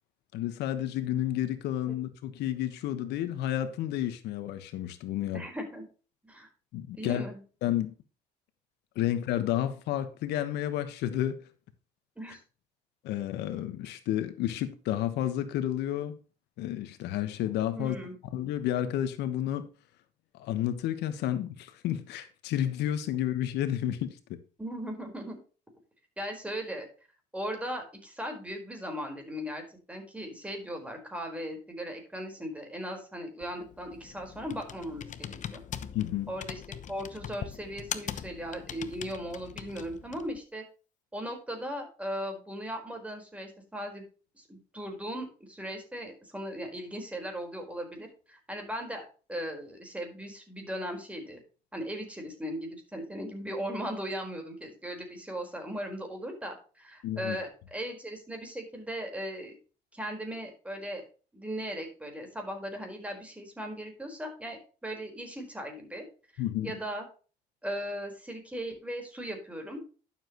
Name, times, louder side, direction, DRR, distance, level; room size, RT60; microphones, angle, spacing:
voice 1, 0.3-5.4 6.7-7.3 7.6-7.9 8.9-11.4 13.0-16.2 16.6-18.0 18.3-19.7 20.3-24.4 35.9-36.3 57.0-57.4 66.4-66.8, left 12 dB, 85° left, 1.2 m, -31 dB
voice 2, 5.3-5.9 6.2-6.5 6.9-7.4 12.2-12.4 17.7-18.2 24.6-25.4 26.2-26.9 27.3-35.6 36.3-36.6 36.9-40.6 41.1-44.0 44.3-51.4 51.7-59.6 59.9-61.0 61.3-66.1 66.3-67.1 67.6-69.8, equal, 10° right, 4.4 m, -38 dB
Computer keyboard, 33.4-40.4, left 9 dB, 45° left, 0.9 m, -41 dB
11.5 x 7.4 x 3.0 m
cardioid pair, 110°, 17 cm